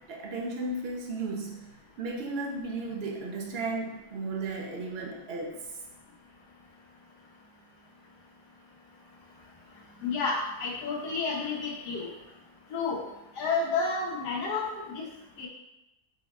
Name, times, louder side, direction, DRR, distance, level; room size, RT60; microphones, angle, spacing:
voice 1, 0.1-1.6 2.0-5.5, right 3 dB, 50° right, 0 dB, 0.8 m, -34 dB
voice 2, 10.0-12.1 12.7-13.0 13.4-15.0 15.4-15.5, left 4 dB, 85° left, -3 dB, 1.5 m, -30 dB
5.4 x 2.2 x 4.1 m, 0.95 s
omnidirectional pair, 1.7 m